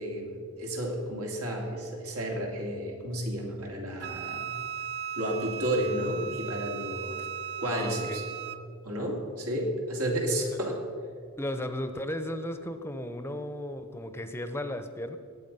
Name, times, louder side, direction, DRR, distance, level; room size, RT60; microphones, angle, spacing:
voice 1, 0.0-4.5 5.2-7.3 7.6-8.2 8.8-10.8, right 1 dB, 90° right, 0 dB, 2.7 m, -32 dB
Wind instrument woodwind instrument, 4.0-8.6, right 8 dB, 50° right, 0.5 m, -37 dB
voice 2, 7.6-8.2 10.5-10.6 11.4-15.2, left 1 dB, 10° left, 9 dB, 0.7 m, -35 dB
19.0 x 8.3 x 5.5 m, 2.3 s
head